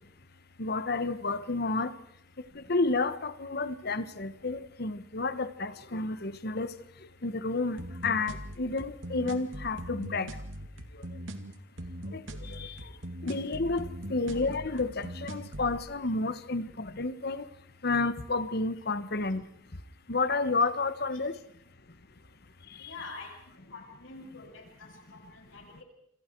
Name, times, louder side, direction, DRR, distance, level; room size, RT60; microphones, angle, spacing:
voice 1, 0.6-1.9 2.7-6.7 7.2-10.3 12.1-12.2 12.5-12.7 13.2-17.4 17.8-19.4 20.1-21.3, left 3 dB, 55° left, 13 dB, 1.2 m, -30 dB
sound 1, 7.8-15.8, right 1 dB, 85° right, 2.4 m, -40 dB
voice 2, 22.8-23.3 23.7-24.6 25.1-25.8, left 3 dB, 85° left, 1 dB, 7.4 m, -45 dB
27.5 x 27.0 x 4.6 m, 0.74 s
head